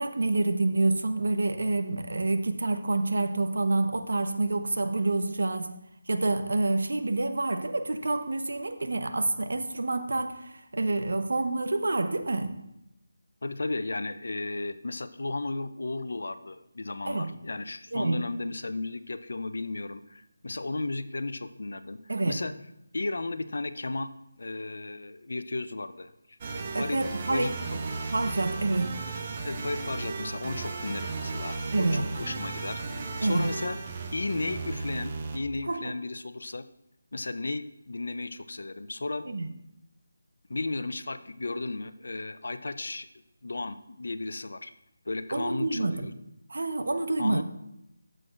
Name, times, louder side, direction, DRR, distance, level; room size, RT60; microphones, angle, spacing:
voice 1, 0.0-5.7 6.1-12.5 17.1-17.3 17.9-18.2 22.1-22.4 26.7-27.5 28.1-29.0 31.7-32.1 33.2-33.5 35.7-35.9 39.3-39.5 45.3-46.1 46.5-47.4, right 2 dB, 65° right, 7 dB, 1.0 m, -27 dB
voice 2, 13.4-22.5 22.9-24.1 24.4-26.1 26.8-27.0 27.3-27.5 29.4-33.8 34.1-36.6 37.1-39.3 40.5-43.1 43.4-44.7 45.1-46.1 47.2-47.4, left 2 dB, 65° left, 12 dB, 0.5 m, -34 dB
sound 1, 26.4-35.4, right 4 dB, 30° right, 0.7 m, -35 dB
12.5 x 7.6 x 2.5 m, 0.85 s
figure-of-eight pair, 160°, 0 cm